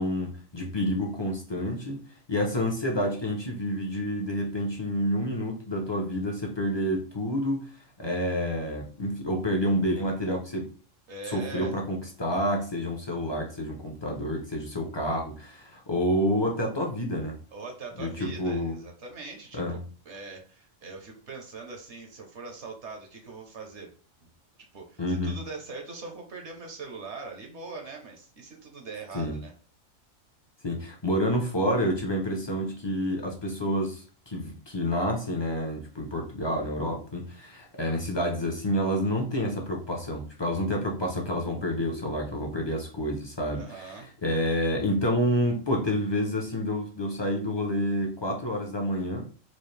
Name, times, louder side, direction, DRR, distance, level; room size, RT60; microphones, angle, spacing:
voice 1, 0.0-7.7 8.0-10.7 11.3-17.4 18.0-18.8 19.5-19.8 25.0-25.4 29.1-29.4 30.6-49.3, equal, 30° left, 1 dB, 0.5 m, -29 dB
voice 2, 11.1-11.8 17.5-19.8 20.0-23.9 24.7-29.5 43.5-44.1, right 4 dB, 60° right, 3 dB, 1.2 m, -41 dB
4.3 x 2.5 x 3.2 m, 0.40 s
omnidirectional pair, 1.4 m